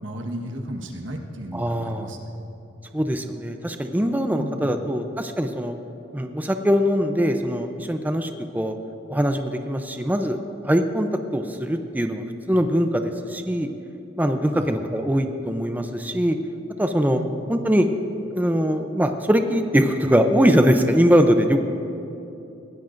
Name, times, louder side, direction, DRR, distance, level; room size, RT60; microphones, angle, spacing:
voice 1, 0.0-2.3 4.4-4.7 14.5-14.7 17.2-17.5, right 1 dB, 90° right, 2 dB, 1.4 m, -34 dB
voice 2, 1.5-2.1 2.9-5.7 6.1-8.8 9.1-10.4 10.6-13.7 14.2-16.4 16.8-17.2 17.5-17.9 18.2-21.6, equal, 10° right, 6 dB, 0.5 m, -22 dB
21.0 x 16.5 x 2.6 m, 2.8 s
head